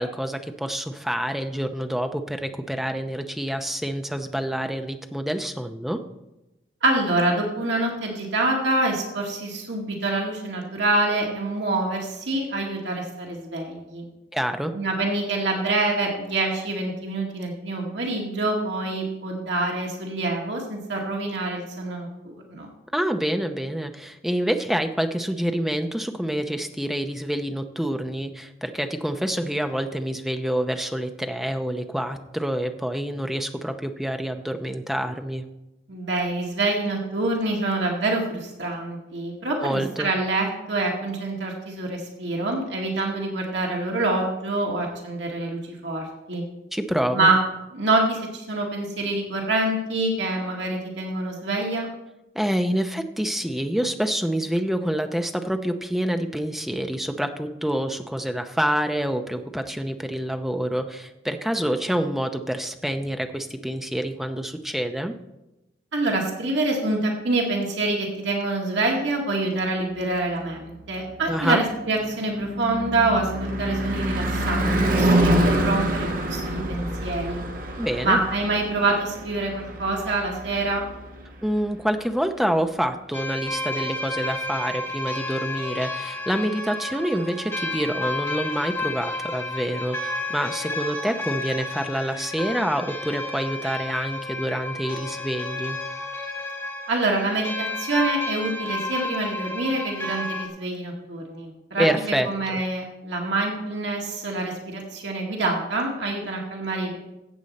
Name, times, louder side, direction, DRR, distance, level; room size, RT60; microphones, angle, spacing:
voice 1, 0.0-6.0 14.3-14.7 22.9-35.5 39.6-40.1 46.7-47.3 52.3-65.1 71.3-71.6 77.8-78.2 81.4-95.8 101.8-102.6, equal, ahead, 6 dB, 0.6 m, -27 dB
voice 2, 6.8-14.0 14.7-22.7 35.9-46.4 47.1-47.4 47.7-51.9 65.9-77.5 78.0-80.9 96.9-101.9 102.3-107.0, right 2 dB, 70° right, -1 dB, 2.0 m, -26 dB
Car passing by / Truck / Engine, 70.9-81.2, right 1 dB, 45° right, 1.4 m, -26 dB
sound 1, 83.1-100.5, left 2 dB, 15° left, 1.9 m, -31 dB
15.5 x 8.0 x 4.2 m, 0.95 s
head